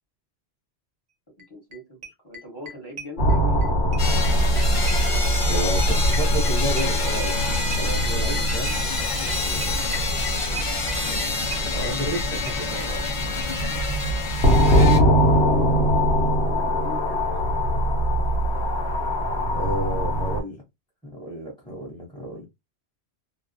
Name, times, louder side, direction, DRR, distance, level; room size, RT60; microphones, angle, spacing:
voice 1, 1.4-3.7 16.4-17.2, left 2 dB, 20° left, 1.0 m, -41 dB
sound 1, 1.4-1.5 1.7-3.7 3.9-13.2 13.4-13.5 13.7-13.8 14.0-14.1, right 1 dB, 50° right, 0.6 m, -37 dB
sound 2, 3.2-20.4, equal, 75° left, 0.9 m, -23 dB
Zurla drone wall of sound, 4.0-15.0, left 3 dB, 40° left, 0.5 m, -28 dB
voice 2, 5.5-7.4 7.8-9.9 11.0-11.2 11.7-13.1 19.5-20.6 21.0-22.4, right 1 dB, 5° left, 0.7 m, -32 dB
2.3 x 2.0 x 2.6 m
omnidirectional pair, 1.1 m